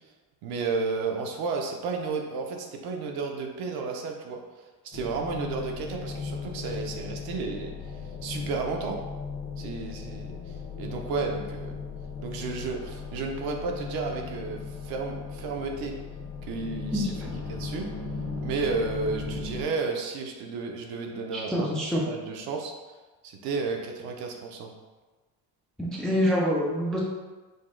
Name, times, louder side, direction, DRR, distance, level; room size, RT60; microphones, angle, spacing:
voice 1, 0.4-7.7 8.2-9.0 9.6-11.8 12.2-16.0 16.4-17.1 17.5-17.9 18.4-22.7 23.2-24.7, right 4 dB, 65° right, 2 dB, 0.8 m, -32 dB
sound 1, 4.9-19.6, left 4 dB, 50° left, 1.1 m, -37 dB
voice 2, 16.9-17.3 21.3-22.0 25.8-27.0, equal, ahead, -4 dB, 0.3 m, -26 dB
5.2 x 2.2 x 3.7 m, 1.2 s
cardioid pair, 160°, 39 cm